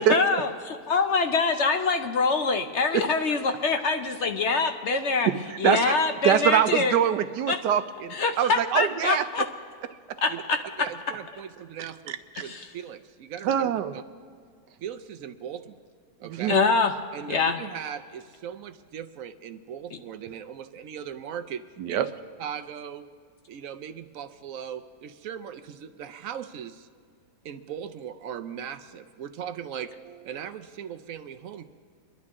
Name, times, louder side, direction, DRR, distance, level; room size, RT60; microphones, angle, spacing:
voice 1, 0.0-5.3 5.6-7.0 7.5-7.6 8.1-9.4 10.2-10.6 12.4-12.7 16.5-16.9 17.3-17.6, left 4 dB, 55° left, 6 dB, 0.8 m, -24 dB
voice 2, 5.6-6.0 6.2-9.2 12.1-12.4 13.4-13.9 16.2-16.5 21.8-22.1, right 10 dB, 80° right, 11 dB, 1.3 m, -24 dB
voice 3, 10.8-14.0 14.8-15.8 16.2-16.6 17.1-22.1 22.4-23.1 23.5-26.9 27.4-31.7, right 8 dB, 65° right, 9 dB, 0.9 m, -39 dB
24.5 x 11.0 x 3.7 m, 2.1 s
omnidirectional pair, 1.8 m